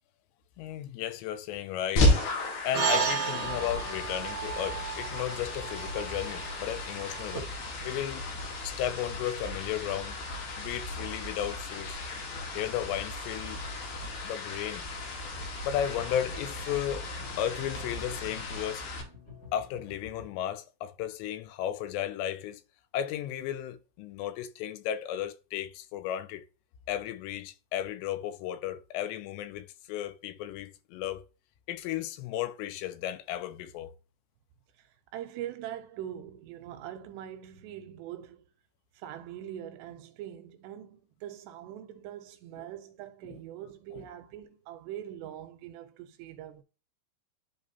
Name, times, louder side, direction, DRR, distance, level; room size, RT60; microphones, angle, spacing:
voice 1, 0.6-2.2 2.6-7.5 7.8-8.2 8.6-10.1 10.6-12.0 12.5-13.6 14.2-14.9 15.6-17.1 17.4-18.9 19.5-22.6 22.9-26.4 26.9-31.2 31.7-33.9 43.9-44.0, left 11 dB, 80° left, 2.6 m, -34 dB
sound 1, 2.0-19.0, left 1 dB, 65° left, 3.3 m, -34 dB
sound 2, 2.7-7.4, right 6 dB, 55° right, 1.6 m, -33 dB
sound 3, 15.7-20.3, left 1 dB, 45° left, 2.0 m, -49 dB
voice 2, 34.7-38.5 38.9-46.6, right 11 dB, 80° right, 2.5 m, -42 dB
10.5 x 3.5 x 2.7 m
omnidirectional pair, 5.4 m